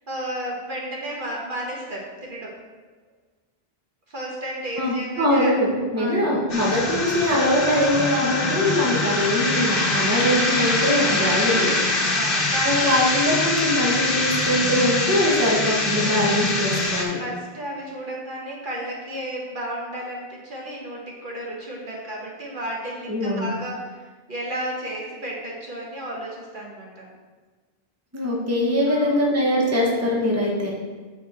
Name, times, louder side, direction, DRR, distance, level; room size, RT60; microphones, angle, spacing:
voice 1, 0.1-2.5 4.1-5.5 6.0-6.2 7.0-7.3 12.0-13.1 16.0-16.9 17.2-24.0 24.3-27.1 28.9-29.3, right 1 dB, 55° right, -3 dB, 1.4 m, -33 dB
voice 2, 4.8-11.7 12.6-17.2 23.1-23.5 28.1-30.7, left 1 dB, 15° right, -3 dB, 1.2 m, -22 dB
sound 1, 6.5-17.0, left 2 dB, 60° left, 1.3 m, -23 dB
8.1 x 4.8 x 4.2 m, 1.4 s
omnidirectional pair, 1.0 m